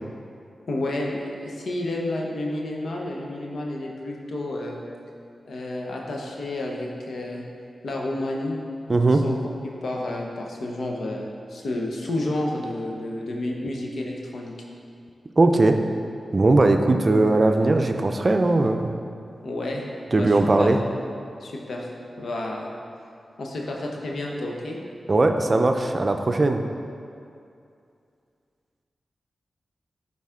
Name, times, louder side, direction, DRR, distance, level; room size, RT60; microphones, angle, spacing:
voice 1, 0.7-4.8 5.5-7.4 7.8-8.6 9.1-9.3 9.8-14.5 19.4-19.8 20.1-20.7 21.4-21.9 22.2-22.7 23.4-24.8, left 1 dB, 75° left, -1 dB, 0.9 m, -30 dB
voice 2, 8.9-9.2 15.4-15.8 16.3-18.9 20.1-20.8 25.1-26.6, right 2 dB, 45° right, 5 dB, 0.5 m, -19 dB
10.5 x 4.0 x 3.7 m, 2.5 s
cardioid pair, 45°, 0 cm